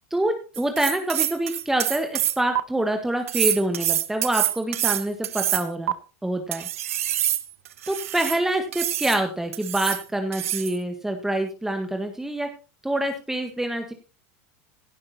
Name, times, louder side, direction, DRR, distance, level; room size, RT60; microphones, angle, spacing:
voice 1, 0.1-5.9 6.2-6.7 7.9-12.5 12.8-13.9, right 1 dB, 5° right, 5 dB, 1.6 m, -26 dB
sound 1, 0.5-2.6 3.3-5.9 6.5-8.4 8.7-9.2 9.5-10.0 10.3-10.8, right 13 dB, 90° right, 0.8 m, -26 dB
16.5 x 6.3 x 4.2 m, 0.33 s
supercardioid pair, 115°, 7 cm